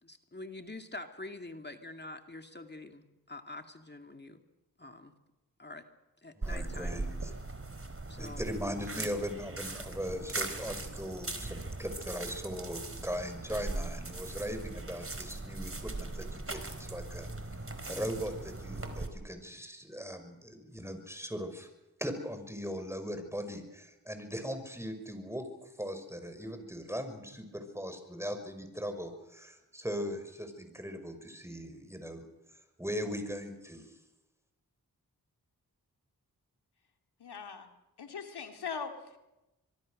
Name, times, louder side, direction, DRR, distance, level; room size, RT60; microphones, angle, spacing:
voice 1, 0.0-4.4 4.8-5.1 5.6-5.8 6.2-7.0 8.1-8.4, left 2 dB, 25° left, 6 dB, 2.4 m, -46 dB
voice 2, 6.4-7.3 8.2-17.3 17.9-21.7 22.0-32.2 32.8-34.0, equal, 5° right, 8 dB, 5.8 m, -39 dB
sound 1, 6.4-19.1, right 2 dB, 35° right, 4.1 m, -39 dB
voice 3, 37.2-37.7 38.0-39.2, left 6 dB, 85° left, 5 dB, 2.5 m, -40 dB
25.0 x 23.0 x 6.6 m, 0.98 s
cardioid pair, 40°, 38 cm